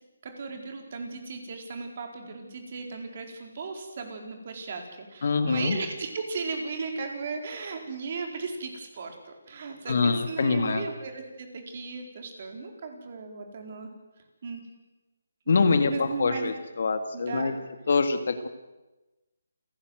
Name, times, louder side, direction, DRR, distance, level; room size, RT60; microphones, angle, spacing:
voice 1, 0.2-13.9 14.4-14.6 15.5-16.5 17.1-17.5, right 4 dB, 45° right, 3 dB, 4.3 m, -36 dB
voice 2, 5.2-5.8 9.9-10.9 15.5-17.5 17.9-18.5, left 4 dB, 60° left, 8 dB, 2.1 m, -25 dB
28.5 x 11.5 x 8.0 m, 1.1 s
figure-of-eight pair, 155°, 0 cm